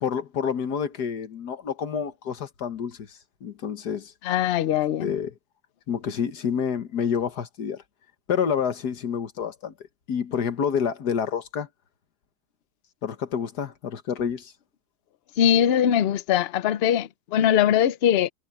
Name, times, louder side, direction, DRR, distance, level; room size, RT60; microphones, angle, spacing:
voice 1, 0.0-3.1 3.4-4.1 5.0-5.3 5.9-7.8 8.3-9.7 10.1-11.7 13.0-14.5, left 7 dB, 90° left, 2.0 m, -28 dB
voice 2, 4.2-5.1 15.4-18.3, left 10 dB, 55° left, 0.7 m, -21 dB
omnidirectional pair, 1.7 m